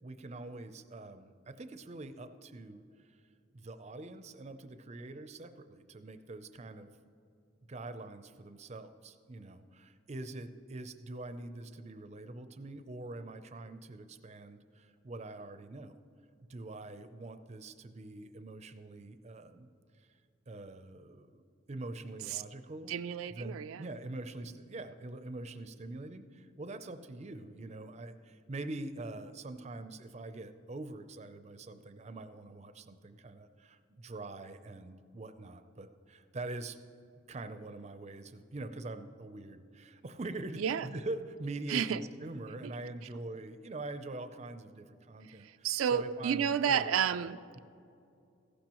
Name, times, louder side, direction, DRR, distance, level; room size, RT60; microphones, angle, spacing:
voice 1, 0.0-3.1 3.5-6.9 7.7-15.9 16.5-19.7 20.0-20.1 20.5-21.4 21.7-22.9 23.3-36.8 37.3-47.3, right 2 dB, 35° right, 10 dB, 0.5 m, -44 dB
voice 2, 22.9-23.8 40.6-40.9 41.7-42.0 45.6-47.6, right 8 dB, 90° right, 11 dB, 0.4 m, -31 dB
15.0 x 11.5 x 3.0 m, 2.5 s
head